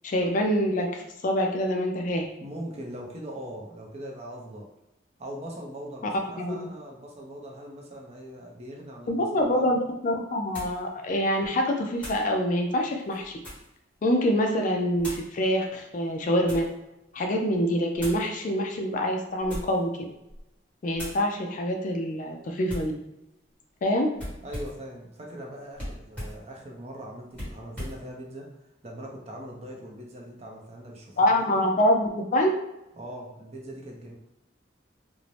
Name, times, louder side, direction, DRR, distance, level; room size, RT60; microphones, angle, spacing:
voice 1, 0.0-2.3 6.4-6.7 9.1-13.3 14.0-16.7 17.1-19.9 20.8-22.9 23.8-24.1 31.2-32.5, equal, 45° left, 3 dB, 0.4 m, -25 dB
voice 2, 2.4-4.7 5.2-9.8 24.4-28.6 28.8-31.5 33.0-34.2, right 1 dB, 35° right, 0 dB, 0.5 m, -41 dB
sound 1, 9.4-9.5 10.5-10.8 12.0-12.3 13.0-13.8 15.0-15.3 16.1-16.7 18.0-18.3 19.4-19.8 20.3-20.5 20.9-21.2 22.7-23.0 24.2-24.8 25.7-26.4 27.3-28.0, equal, 5° left, 1.1 m, -38 dB
2.6 x 2.0 x 3.1 m, 0.90 s
head